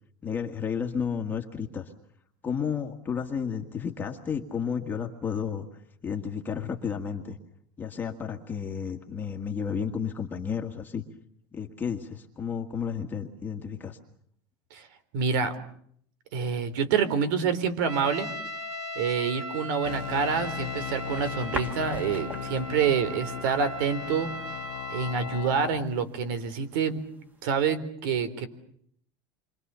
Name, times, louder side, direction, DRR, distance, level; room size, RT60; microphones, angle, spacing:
voice 1, 0.2-1.9 2.4-7.4 7.8-11.0 11.5-14.0, left 7 dB, 15° left, 2 dB, 1.8 m, -32 dB
voice 2, 15.1-15.5 16.3-18.3 19.0-24.3 24.9-27.0 27.4-28.5, right 6 dB, 70° right, 13 dB, 3.9 m, -27 dB
Trumpet, 17.9-25.5, equal, 30° right, 4.1 m, -38 dB
sound 1, 19.8-25.8, left 14 dB, 80° left, 1.1 m, -38 dB
sound 2, 20.4-27.8, right 1 dB, 15° right, 2.1 m, -44 dB
28.0 x 24.5 x 7.0 m, 0.66 s
supercardioid pair, 165°, 11 cm